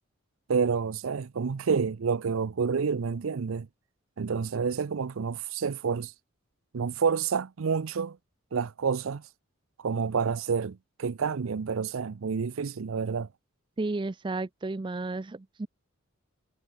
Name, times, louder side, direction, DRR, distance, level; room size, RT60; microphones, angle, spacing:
voice 1, 0.5-3.7 4.2-6.1 6.7-8.2 8.5-9.2 9.8-13.3, right 5 dB, 75° right, 0.5 m, -29 dB
voice 2, 13.8-15.7, right 2 dB, 25° right, 0.4 m, -32 dB
head